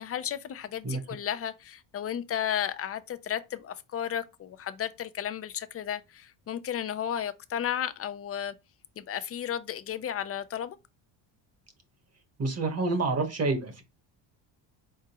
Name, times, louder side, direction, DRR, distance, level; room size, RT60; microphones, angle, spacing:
voice 1, 0.0-8.5 9.0-10.8, left 9 dB, 30° left, 0.5 m, -33 dB
voice 2, 12.4-13.8, right 3 dB, 35° right, 1.3 m, -28 dB
4.4 x 3.7 x 2.9 m
cardioid pair, 100°, 45 cm